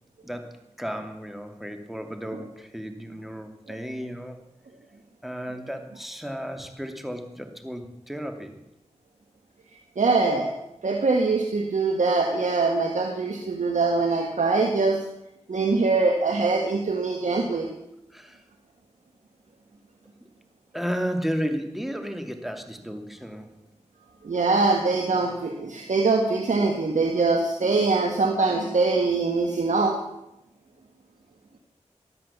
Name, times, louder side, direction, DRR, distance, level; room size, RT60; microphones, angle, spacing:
voice 1, 0.2-4.4 5.2-8.6 18.1-18.4 20.7-23.5, equal, ahead, 6 dB, 2.6 m, -33 dB
voice 2, 10.0-10.6 10.8-15.0 15.5-17.7 24.2-29.9, right 3 dB, 85° right, 2 dB, 1.7 m, -23 dB
13.5 x 11.0 x 7.2 m, 0.85 s
cardioid pair, 40°, 12 cm